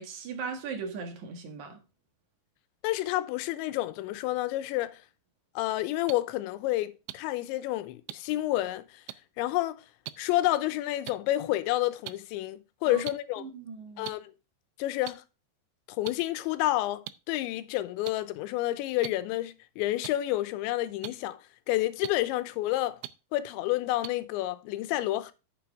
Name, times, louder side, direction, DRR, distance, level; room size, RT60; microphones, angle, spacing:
voice 1, 0.0-1.8 12.9-13.0 13.4-14.2, right 5 dB, 55° right, 2.3 m, -38 dB
voice 2, 2.8-5.0 5.6-8.9 9.4-9.8 10.2-13.5 14.0-14.3 14.8-15.2 16.0-21.4 21.7-23.0 23.3-25.3, left 15 dB, 85° left, 3.0 m, -29 dB
sound 1, 6.1-6.2 7.1-7.2 8.1-8.2 9.1-9.2 10.1-10.2 11.1-11.2 12.1-12.2 13.1-13.2 14.0-14.1 15.1-15.2 16.1-16.2 17.1-17.2 18.1-18.2 19.0-19.1 20.0-20.1 21.0-21.1 22.0-22.1 23.0-23.1 24.0-24.1, right 16 dB, 90° right, 3.0 m, -37 dB
9.4 x 7.0 x 3.5 m
omnidirectional pair, 5.2 m